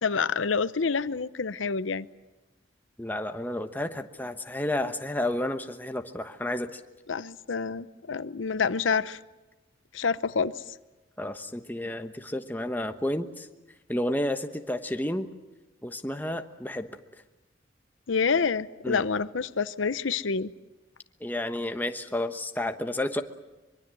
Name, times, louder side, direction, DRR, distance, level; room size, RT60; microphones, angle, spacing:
voice 1, 0.0-2.1 7.1-9.2 9.9-10.6 18.1-20.5, left 5 dB, 90° left, 15 dB, 0.7 m, -27 dB
voice 2, 3.0-6.8 11.2-13.5 13.9-15.3 15.8-16.9 18.8-19.0 21.2-23.2, left 1 dB, 10° left, 7 dB, 1.1 m, -31 dB
24.5 x 23.0 x 7.7 m, 1.1 s
head